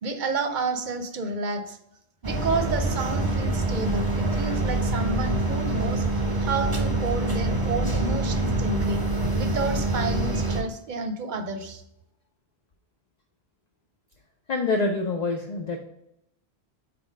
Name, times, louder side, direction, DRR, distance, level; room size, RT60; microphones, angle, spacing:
voice 1, 0.0-1.8 2.2-6.0 6.4-9.0 9.3-11.8, right 3 dB, 50° right, 7 dB, 0.7 m, -30 dB
sound 1, 2.2-10.6, right 2 dB, 25° right, 0.8 m, -25 dB
voice 2, 14.5-15.8, left 3 dB, 50° left, 2 dB, 0.6 m, -26 dB
4.3 x 4.2 x 5.1 m, 0.81 s
omnidirectional pair, 1.1 m